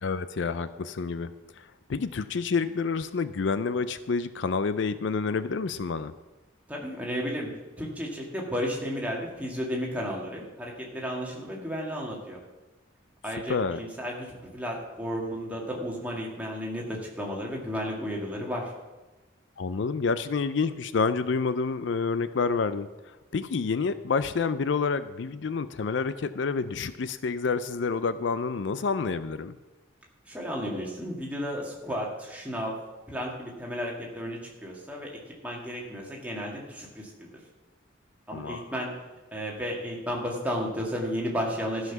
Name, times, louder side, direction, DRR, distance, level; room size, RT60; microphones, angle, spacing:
voice 1, 0.0-1.3 1.6-6.1 13.5-13.8 19.6-22.9 23.3-29.6 38.3-38.7, left 4 dB, 70° left, 13 dB, 0.4 m, -28 dB
voice 2, 6.7-7.5 7.8-12.4 13.2-18.7 30.3-32.8 33.1-35.1 35.4-37.3 38.3-38.9 39.3-41.9, equal, 10° right, -2 dB, 1.8 m, -33 dB
13.5 x 5.8 x 6.0 m, 1.1 s
head